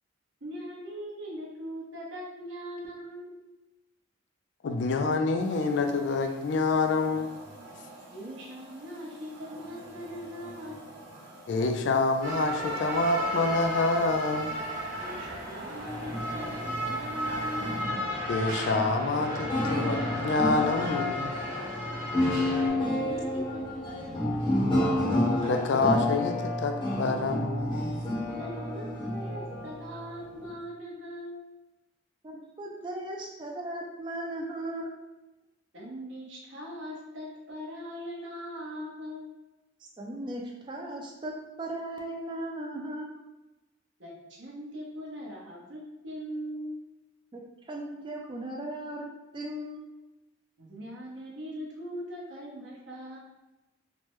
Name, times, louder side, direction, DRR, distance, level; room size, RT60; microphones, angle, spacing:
voice 1, 0.4-3.4 8.1-10.9 14.9-18.1 22.4-24.5 28.4-31.5 35.7-39.3 44.0-46.8 50.6-53.2, equal, 70° right, -4 dB, 0.8 m, -41 dB
voice 2, 4.6-7.3 11.5-14.6 18.3-21.4 25.5-27.9, left 3 dB, 65° left, 5 dB, 0.3 m, -27 dB
sound 1, 5.4-17.9, right 2 dB, 55° right, 1.1 m, -48 dB
sound 2, 12.2-22.7, equal, 90° right, 1.0 m, -34 dB
sound 3, 15.9-30.6, left 1 dB, 25° left, 0.6 m, -30 dB
voice 3, 32.2-34.9 40.0-41.3 41.6-43.0 47.3-47.4 47.7-49.8, right 1 dB, 25° right, 0 dB, 0.3 m, -37 dB
3.2 x 2.1 x 3.0 m, 1.0 s
head